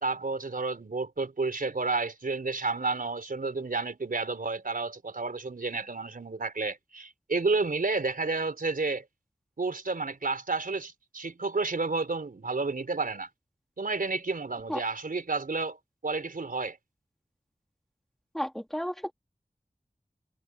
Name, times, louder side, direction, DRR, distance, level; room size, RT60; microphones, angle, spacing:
voice 1, 0.0-9.0 9.6-13.3 13.8-15.8 16.0-16.8, right 3 dB, 85° right, 4.4 m, -31 dB
voice 2, 18.3-19.1, equal, ahead, 2.3 m, -32 dB
wide cardioid pair, 45°, 14 cm